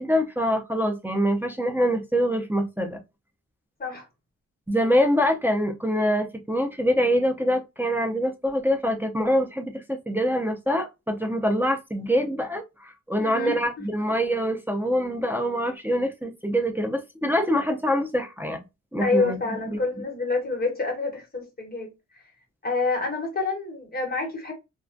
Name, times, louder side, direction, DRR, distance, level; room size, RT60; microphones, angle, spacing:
voice 1, 0.0-3.0 4.7-18.6 18.9-19.4 19.7-19.8, equal, 5° right, 0.4 m, -24 dB
voice 2, 13.2-13.9 19.0-21.9 22.6-24.5, left 3 dB, 30° left, 1.0 m, -27 dB
2.3 x 2.2 x 2.4 m
wide cardioid pair, 145°, 31 cm